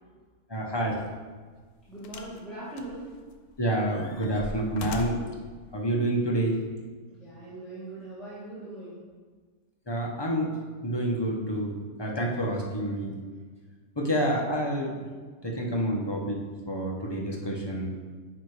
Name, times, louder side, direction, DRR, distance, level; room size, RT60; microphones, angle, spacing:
voice 1, 0.5-1.0 3.6-5.2 5.7-6.6 9.9-10.5 10.8-11.7 12.0-13.2 14.0-15.1 15.4-16.4 16.7-17.9, right 1 dB, 20° left, -2 dB, 0.8 m, -28 dB
sound 1, 0.9-1.0 2.0-2.4 2.8-3.5 3.9-5.4 6.3-6.4, left 4 dB, 90° left, 1.1 m, -39 dB
voice 2, 1.9-3.1 7.2-9.0, right 2 dB, ahead, -11 dB, 1.7 m, -40 dB
8.8 x 3.2 x 4.9 m, 1.5 s
omnidirectional pair, 1.5 m